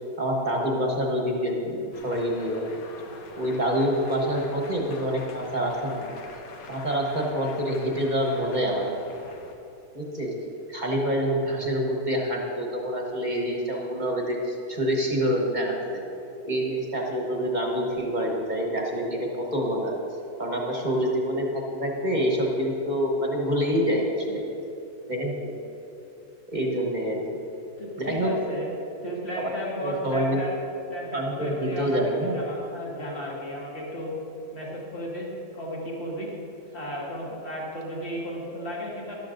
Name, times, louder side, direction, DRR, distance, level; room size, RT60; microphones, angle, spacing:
voice 1, 0.2-2.7 3.4-6.2 6.7-9.1 9.9-10.3 10.7-16.0 16.4-19.9 20.4-21.5 21.7-24.4 25.1-25.5 26.5-27.2 28.0-28.3 29.4-29.5 29.8-30.4 31.1-32.4, equal, 30° right, -1 dB, 1.2 m, -26 dB
sound 1, 1.9-9.5, left 4 dB, 70° left, 1.3 m, -45 dB
voice 2, 27.8-28.7 29.0-30.5 30.9-34.1 34.5-35.3 35.5-36.3 36.7-39.1, equal, 40° left, -4 dB, 2.1 m, -34 dB
13.0 x 11.5 x 2.6 m, 2.8 s
omnidirectional pair, 1.6 m